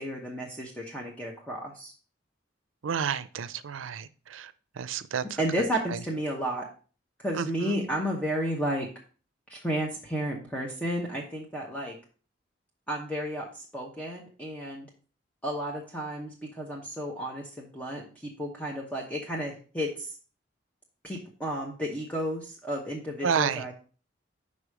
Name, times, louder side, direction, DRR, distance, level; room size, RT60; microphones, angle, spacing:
voice 1, 0.0-1.9 5.4-6.7 7.2-8.9 9.5-12.0 12.9-14.9 15.4-20.1 21.0-23.7, equal, 5° left, 0.9 m, -32 dB
voice 2, 2.8-4.5 4.8-5.2 7.4-7.8 23.2-23.6, right 6 dB, 85° right, 0.5 m, -30 dB
5.4 x 4.9 x 4.9 m
head